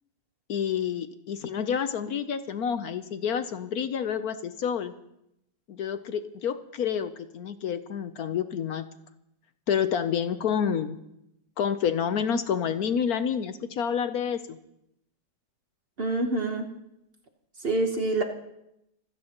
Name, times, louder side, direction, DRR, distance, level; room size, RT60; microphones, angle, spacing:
voice 1, 0.5-4.9 5.7-8.8 9.7-11.0 11.6-14.6, left 7 dB, 65° left, 10 dB, 1.1 m, -28 dB
voice 2, 16.0-16.7 17.6-18.2, right 2 dB, 40° right, 4 dB, 1.1 m, -26 dB
25.5 x 16.0 x 3.0 m, 0.81 s
omnidirectional pair, 1.9 m